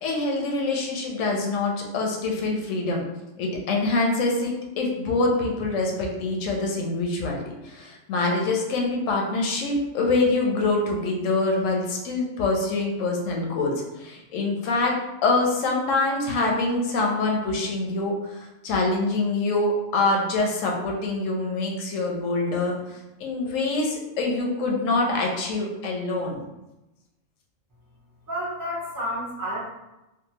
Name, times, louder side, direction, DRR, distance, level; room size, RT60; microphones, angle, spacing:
voice 1, 0.0-3.0 3.4-15.0 15.2-26.4, left 3 dB, 80° left, 0 dB, 1.0 m, -25 dB
voice 2, 28.3-29.6, equal, 30° right, -6 dB, 0.3 m, -30 dB
2.7 x 2.3 x 2.8 m, 0.99 s
omnidirectional pair, 1.4 m